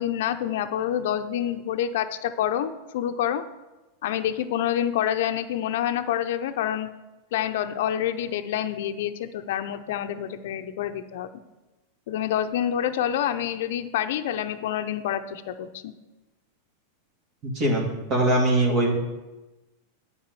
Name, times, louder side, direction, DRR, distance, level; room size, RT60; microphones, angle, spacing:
voice 1, 0.0-3.4 4.0-6.9 7.3-11.4 12.1-15.9, left 10 dB, 70° left, 9 dB, 0.6 m, -27 dB
voice 2, 17.4-19.0, right 1 dB, 40° right, -2 dB, 2.5 m, -22 dB
8.6 x 4.8 x 7.6 m, 1.1 s
hypercardioid pair, 115°, 0 cm